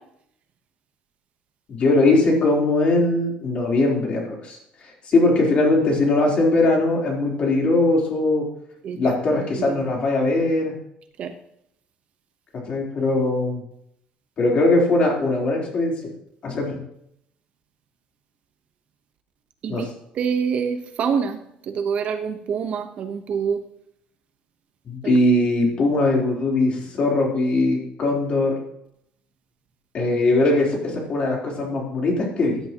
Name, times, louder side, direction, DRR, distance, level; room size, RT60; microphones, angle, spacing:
voice 1, 1.7-4.6 5.1-8.5 8.9-10.7 12.7-13.6 14.4-15.9 16.4-16.8 19.7-19.9 24.9-28.5 29.9-32.6, left 2 dB, 40° left, -2 dB, 3.8 m, -20 dB
voice 2, 20.2-21.3 21.8-23.6, right 6 dB, 50° right, 7 dB, 1.1 m, -25 dB
16.5 x 10.5 x 3.0 m, 0.75 s
cardioid pair, 145°, 3 cm